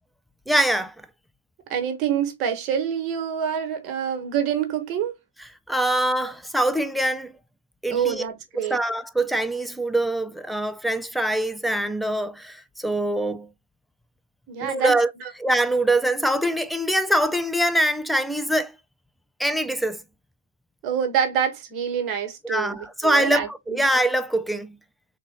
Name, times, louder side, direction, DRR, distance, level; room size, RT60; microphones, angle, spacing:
voice 1, 0.5-0.9 5.7-7.3 7.8-8.2 8.5-13.5 14.6-15.1 15.4-18.7 19.4-20.0 22.4-24.8, right 1 dB, ahead, 0.3 m, -23 dB
voice 2, 1.7-5.2 6.2-6.3 7.9-8.8 14.5-14.9 15.2-15.3 20.8-23.8, right 8 dB, 30° right, 1.1 m, -26 dB
3.6 x 2.4 x 3.4 m
hypercardioid pair, 130°, 0 cm